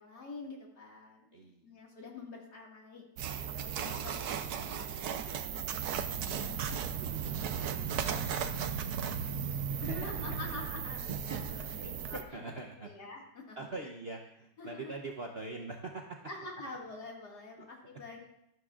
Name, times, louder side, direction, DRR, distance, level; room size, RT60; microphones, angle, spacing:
voice 1, 0.0-1.3 1.6-3.0 3.3-4.9 6.1-6.7 9.8-12.4 12.8-13.6 13.8-13.9 14.6-14.9 16.2-18.3, left 3 dB, 60° left, -1 dB, 2.6 m, -46 dB
voice 2, 1.3-1.6 6.4-8.5 9.9-10.0 11.8-11.9 12.1-12.9 13.6-16.2 17.6-17.7, right 3 dB, 50° right, 1 dB, 0.7 m, -44 dB
sound 1, 3.2-12.2, right 7 dB, 65° right, 1.1 m, -36 dB
13.0 x 12.5 x 2.5 m, 0.82 s
omnidirectional pair, 1.9 m